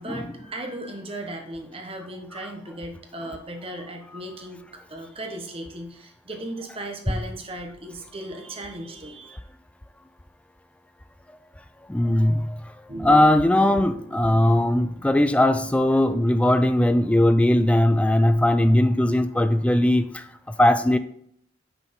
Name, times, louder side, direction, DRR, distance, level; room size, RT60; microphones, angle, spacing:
voice 1, 0.0-4.6 4.9-9.4, right 1 dB, 30° right, 3 dB, 1.0 m, -36 dB
voice 2, 11.9-12.6 13.0-21.0, left 1 dB, 5° left, 10 dB, 0.3 m, -19 dB
sound 1, 12.9-15.7, right 1 dB, 50° right, 1.3 m, -39 dB
5.8 x 4.1 x 5.3 m, 0.68 s
head